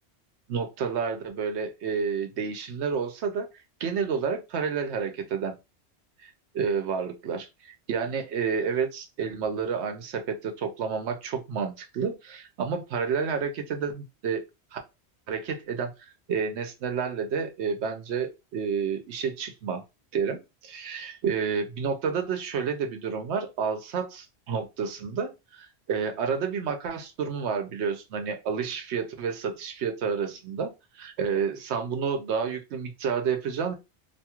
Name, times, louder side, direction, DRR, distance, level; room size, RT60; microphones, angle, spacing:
voice 1, 0.5-3.5 3.8-5.6 6.2-14.4 14.7-14.8 15.3-15.9 16.3-19.8 20.1-33.7, right 6 dB, 80° right, 0.9 m, -30 dB
2.6 x 2.3 x 2.8 m
omnidirectional pair, 1.1 m